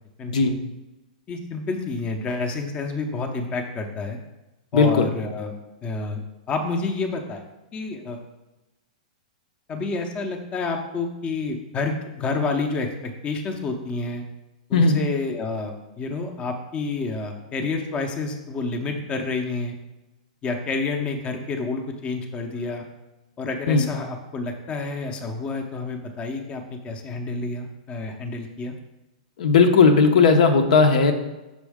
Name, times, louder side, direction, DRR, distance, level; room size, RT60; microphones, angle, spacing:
voice 1, 1.3-4.2 4.7-5.5 5.8-7.4 7.7-8.2 9.7-14.2 14.7-19.8 20.4-22.9 23.4-28.7, left 3 dB, 25° left, 4 dB, 0.7 m, -29 dB
voice 2, 4.7-5.1 14.7-15.0 23.7-23.9 29.4-31.1, left 4 dB, 70° left, 5 dB, 0.7 m, -17 dB
6.2 x 4.4 x 3.5 m, 1.0 s
hypercardioid pair, 135°, 4 cm